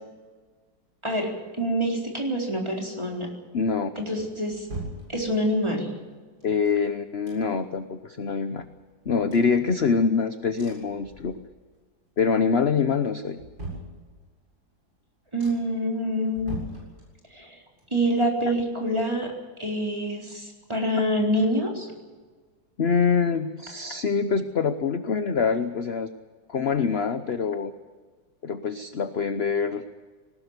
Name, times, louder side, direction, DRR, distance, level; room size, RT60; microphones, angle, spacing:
voice 1, 1.0-3.3 4.0-4.7 5.1-5.9 15.3-16.6 17.3-17.6 17.9-19.3 19.6-21.9, equal, 15° right, -1 dB, 4.1 m, -26 dB
voice 2, 3.5-3.9 6.4-8.6 9.1-11.4 12.2-13.4 22.8-26.1 26.5-27.7 28.4-29.8, left 5 dB, 45° left, 9 dB, 1.0 m, -25 dB
sound 1, 3.9-5.7 6.4-7.8 8.2-8.3 8.5-10.2 10.6-11.8 12.1-12.6 13.0-14.5 14.9-15.0 15.4-15.9 16.3-17.5 17.8-19.6 19.9-20.0, right 2 dB, 60° right, 8.1 m, -42 dB
20.5 x 19.5 x 8.2 m, 1.4 s
omnidirectional pair, 1.9 m